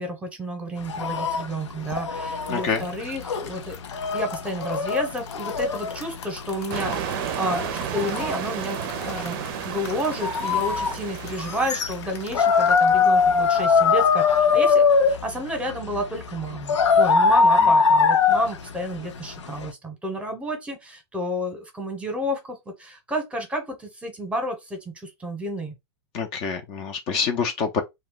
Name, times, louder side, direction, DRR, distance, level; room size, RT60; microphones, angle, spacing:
voice 1, 0.0-3.8 4.1-9.4 9.6-25.7, equal, 10° right, 0.9 m, -31 dB
sound 1, 0.8-19.7, left 5 dB, 90° left, 0.5 m, -23 dB
sound 2, 1.5-14.5, left 7 dB, 65° left, 0.8 m, -44 dB
voice 2, 2.5-2.9 17.6-17.7 26.1-27.8, left 6 dB, 40° left, 0.6 m, -26 dB
sound 3, 6.7-12.9, right 10 dB, 50° right, 0.4 m, -33 dB
2.2 x 2.2 x 3.8 m
hypercardioid pair, 120°, 15 cm